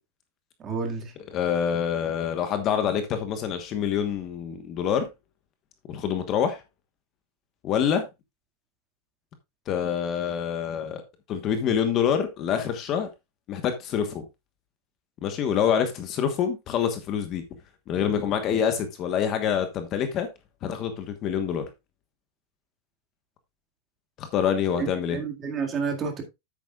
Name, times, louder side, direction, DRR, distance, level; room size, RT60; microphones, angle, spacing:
voice 1, 0.6-1.1 24.7-26.2, right 5 dB, 20° right, 2.0 m, -30 dB
voice 2, 1.3-5.1 5.9-6.6 7.6-8.0 9.7-11.0 11.3-13.1 13.5-14.3 15.2-17.4 17.9-20.3 20.6-21.7 24.2-25.2, left 8 dB, 30° left, 1.2 m, -26 dB
10.0 x 8.6 x 2.4 m
supercardioid pair, 170°, 0 cm